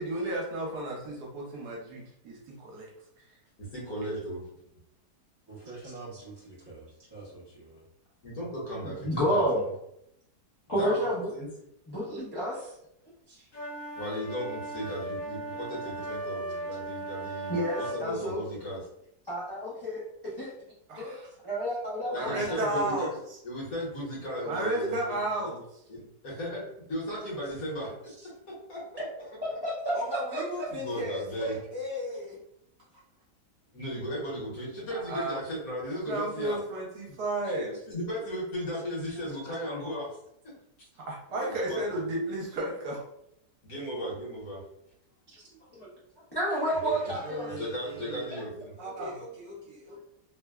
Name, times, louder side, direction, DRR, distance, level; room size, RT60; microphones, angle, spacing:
voice 1, 0.0-2.9 20.9-21.3 22.1-23.1 24.4-25.6 34.9-35.4 36.1-37.7 41.0-43.0 47.2-48.4 48.8-49.1, right 1 dB, 70° right, -2 dB, 1.3 m, -33 dB
voice 2, 3.7-4.4 8.2-9.7 10.8-11.1 11.3-11.5 13.9-18.8 22.1-23.1 23.4-25.6 25.9-27.9 28.5-29.0 30.7-31.5 33.7-36.6 37.4-37.5 37.9-40.1 41.3-41.9 43.6-44.6 46.8-47.2 47.5-48.5, equal, 60° left, -5 dB, 1.4 m, -36 dB
voice 3, 5.5-7.8, right 3 dB, 25° right, -9 dB, 0.5 m, -46 dB
voice 4, 8.8-9.6 10.7-11.3 11.9-12.7 13.3-13.4 17.5-18.4 19.3-20.0 20.4-20.5 21.0-21.1 21.4-23.0 29.4-30.6 45.3-45.4 45.8-45.9 46.3-47.5, equal, 35° left, -9 dB, 0.4 m, -30 dB
sound 1, 13.5-18.0, right 2 dB, 85° left, 1.3 m, -37 dB
voice 5, 29.9-32.4 32.9-33.0 45.5-45.6 46.5-48.3 48.8-50.0, left 2 dB, 50° right, -7 dB, 0.9 m, -39 dB
3.2 x 2.1 x 2.3 m, 0.77 s
omnidirectional pair, 1.8 m